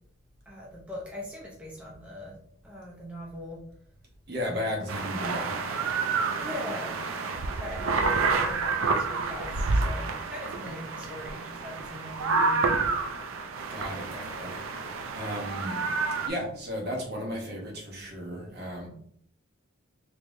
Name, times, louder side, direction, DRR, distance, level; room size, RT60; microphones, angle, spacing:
voice 1, 0.5-2.3 2.6-3.6 6.4-6.9 7.6-12.6, left 1 dB, 5° right, -4 dB, 0.6 m, -40 dB
voice 2, 4.3-5.6 13.7-15.9 16.3-18.9, equal, 55° right, -1 dB, 1.0 m, -35 dB
sound 1, 4.9-16.3, right 4 dB, 90° right, 0.4 m, -29 dB
3.3 x 3.2 x 2.6 m, 0.65 s
head